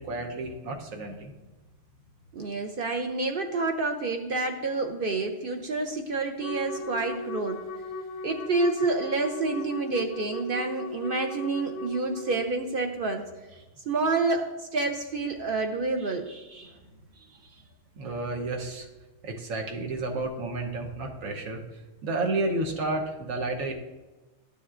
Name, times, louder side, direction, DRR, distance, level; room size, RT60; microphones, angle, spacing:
voice 1, 0.0-1.3 17.3-17.6 18.0-18.9 19.2-23.8, right 2 dB, 85° right, 3 dB, 1.3 m, -31 dB
voice 2, 2.3-7.6 8.2-13.3 13.9-16.7, right 3 dB, 55° right, 4 dB, 0.6 m, -28 dB
Wind instrument woodwind instrument, 6.4-12.5, left 1 dB, 55° left, 0.6 m, -37 dB
12.0 x 7.0 x 2.5 m, 1.2 s
omnidirectional pair, 1.3 m